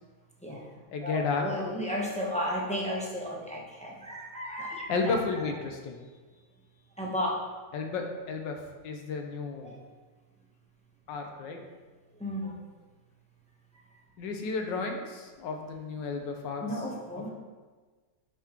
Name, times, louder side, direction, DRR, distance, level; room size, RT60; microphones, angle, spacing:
voice 1, 0.4-5.5 7.0-7.4 9.6-9.8 12.2-12.7 16.6-17.3, equal, 10° left, -4 dB, 0.3 m, -34 dB
voice 2, 0.9-1.4 4.9-6.0 7.7-8.6 8.8-9.7 11.1-11.6 14.2-16.6, left 4 dB, 75° left, 3 dB, 1.5 m, -32 dB
8.1 x 5.8 x 3.0 m, 1.4 s
omnidirectional pair, 2.0 m